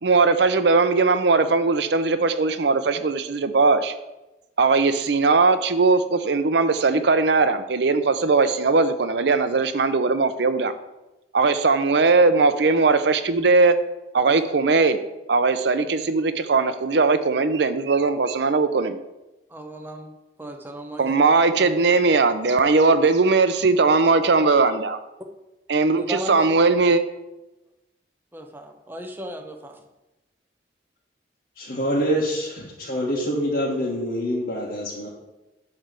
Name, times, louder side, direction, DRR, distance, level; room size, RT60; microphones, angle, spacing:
voice 1, 0.0-3.9 4.6-10.7 11.3-13.7 14.1-15.0 15.3-19.0 21.0-25.0 25.7-27.0, right 3 dB, 70° right, 11 dB, 0.6 m, -19 dB
voice 2, 19.5-20.1 20.4-21.0 21.6-21.7 26.0-26.5 28.3-29.8, right 1 dB, 10° right, 4 dB, 0.8 m, -36 dB
voice 3, 31.6-35.1, equal, 60° left, -6 dB, 1.4 m, -25 dB
9.7 x 3.3 x 6.7 m, 1.0 s
head